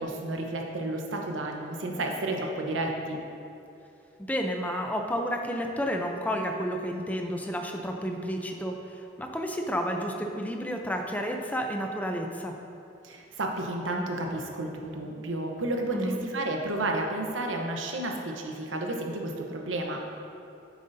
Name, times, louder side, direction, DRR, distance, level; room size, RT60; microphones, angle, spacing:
voice 1, 0.0-3.2 13.0-20.0, right 2 dB, 85° right, 1 dB, 0.9 m, -31 dB
voice 2, 4.2-12.5 15.9-16.2, equal, 10° left, 3 dB, 0.5 m, -31 dB
9.3 x 7.3 x 2.7 m, 2.7 s
head